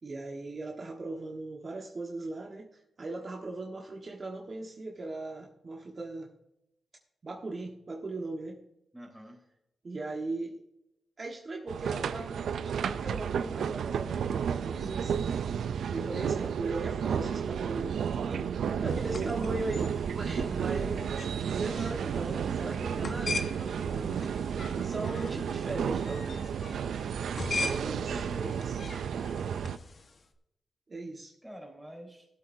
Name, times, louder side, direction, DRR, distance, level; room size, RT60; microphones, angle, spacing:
voice 1, 0.0-6.3 7.2-8.6 9.8-10.6 11.2-15.4 15.9-24.2 24.7-26.5 27.5-28.8 30.9-31.3, right 2 dB, 45° right, 0 dB, 1.4 m, -38 dB
voice 2, 8.9-9.4 16.2-16.5 18.7-19.3 27.6-28.7 31.4-32.3, right 1 dB, 5° right, -1 dB, 3.9 m, -47 dB
sound 1, 11.7-29.8, right 7 dB, 85° right, 0.4 m, -32 dB
sound 2, 18.9-30.2, left 3 dB, 50° left, 1.3 m, -41 dB
18.0 x 8.1 x 2.7 m, 0.85 s
cardioid pair, 75°, 0 cm